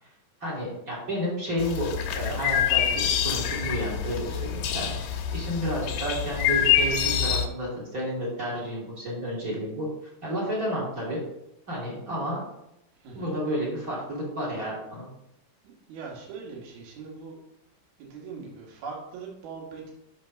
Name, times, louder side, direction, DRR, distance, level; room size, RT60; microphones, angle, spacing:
voice 1, 0.4-4.9 5.3-9.9 10.2-11.2 11.7-12.4 13.1-15.1, equal, 25° right, -4 dB, 2.8 m, -31 dB
sound 1, 1.6-7.5, left 9 dB, 90° left, 3.3 m, -26 dB
voice 2, 13.0-13.3 15.9-17.4 18.0-19.9, right 5 dB, 65° right, -2 dB, 3.8 m, -40 dB
7.5 x 6.1 x 6.6 m, 0.82 s
omnidirectional pair, 4.8 m